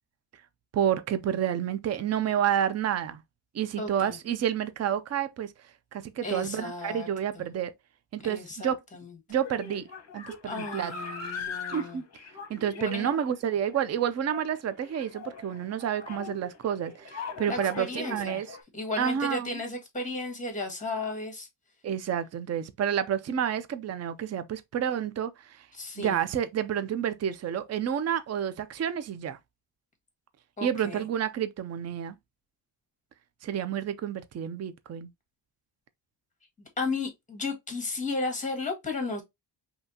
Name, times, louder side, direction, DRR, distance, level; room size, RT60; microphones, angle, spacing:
voice 1, 0.7-3.2 3.5-5.5 5.9-7.7 8.1-8.8 9.3-9.9 10.1-10.9 11.7-12.1 12.5-18.6 19.0-19.6 21.8-25.7 26.0-29.4 30.6-32.2 33.4-35.1, right 9 dB, 35° right, 0.5 m, -29 dB
voice 2, 3.8-4.2 6.2-7.1 8.2-9.1 10.4-12.0 12.8-13.1 17.5-18.4 18.7-21.5 25.7-26.2 30.6-31.0 36.8-39.2, left 2 dB, 15° left, 1.6 m, -34 dB
sound 1, 9.3-18.6, left 5 dB, 35° left, 1.1 m, -41 dB
5.5 x 2.9 x 2.7 m
wide cardioid pair, 160°, 45 cm